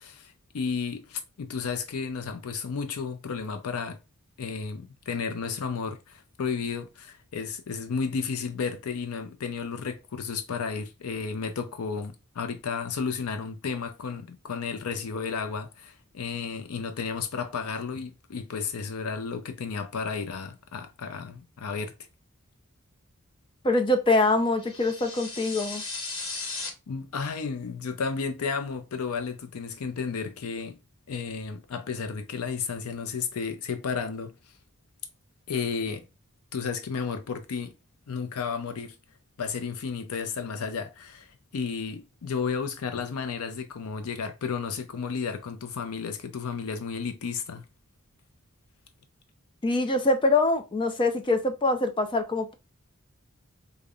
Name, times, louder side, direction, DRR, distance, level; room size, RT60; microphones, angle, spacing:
voice 1, 0.0-4.0 4.4-21.9 26.9-30.8 31.1-34.4 35.5-36.1 36.5-37.7 38.1-39.0 39.4-47.6, left 5 dB, 90° left, 0.5 m, -33 dB
voice 2, 23.6-25.8 49.6-52.5, left 2 dB, 25° left, 0.5 m, -24 dB
sound 1, 24.6-26.7, left 3 dB, 65° left, 1.1 m, -36 dB
5.1 x 2.1 x 2.3 m
head